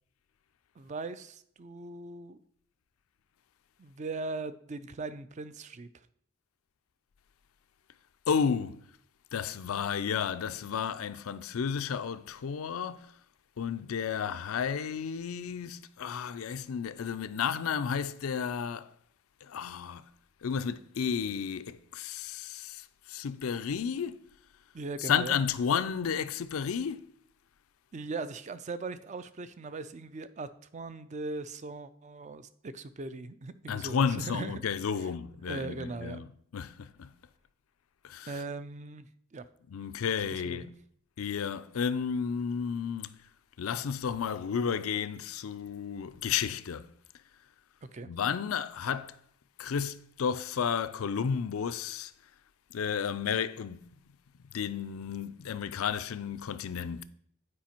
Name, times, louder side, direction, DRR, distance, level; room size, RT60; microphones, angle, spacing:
voice 1, 0.8-2.4 3.8-5.9 24.7-25.4 27.9-34.6 35.4-36.2 38.3-39.5 40.3-40.7 47.9-48.1, right 3 dB, 35° right, 0.4 m, -39 dB
voice 2, 8.3-8.8 9.3-13.1 13.6-18.9 19.4-20.0 20.4-24.3 25.0-27.1 33.7-36.3 36.5-37.1 38.0-38.3 39.7-40.8 41.2-43.2 43.6-46.9 48.1-49.2 49.6-52.1 52.7-53.9 54.5-57.0, left 7 dB, 85° left, 0.4 m, -32 dB
8.5 x 4.8 x 4.4 m
head